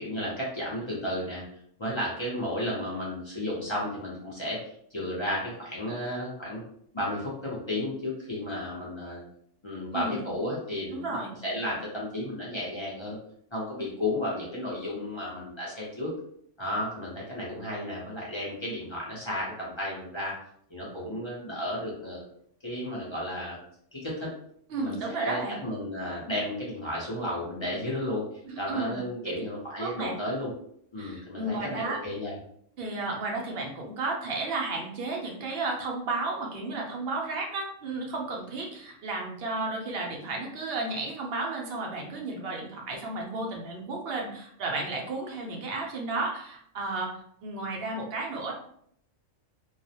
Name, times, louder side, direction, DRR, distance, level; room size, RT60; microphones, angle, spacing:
voice 1, 0.0-1.4 1.8-4.6 4.9-6.6 6.9-9.2 9.6-13.2 13.5-16.1 16.6-20.4 20.7-22.2 22.6-23.6 23.9-24.3 24.8-28.2 28.6-30.5 30.9-32.3, left 1 dB, 35° left, -6 dB, 0.4 m, -33 dB
voice 2, 9.9-10.2 10.9-11.3 24.7-25.6 28.4-29.3 29.8-30.2 31.0-32.0 32.8-48.5, right 3 dB, 60° right, 0 dB, 0.7 m, -33 dB
2.3 x 2.0 x 2.7 m, 0.67 s
omnidirectional pair, 1.3 m